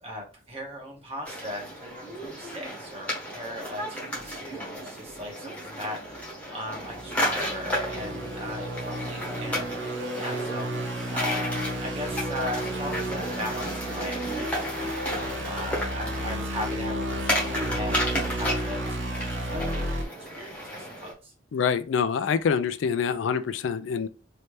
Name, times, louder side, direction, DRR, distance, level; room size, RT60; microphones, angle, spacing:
voice 1, 0.0-9.8 10.1-14.7 15.4-21.3, left 1 dB, 30° right, 1.2 m, -38 dB
sound 1, 1.3-21.1, equal, 5° left, 1.0 m, -33 dB
sound 2, 6.0-6.2 6.7-20.0, right 1 dB, 70° right, 0.8 m, -32 dB
voice 2, 21.5-24.1, left 6 dB, 75° left, 0.3 m, -26 dB
3.2 x 2.7 x 3.2 m
head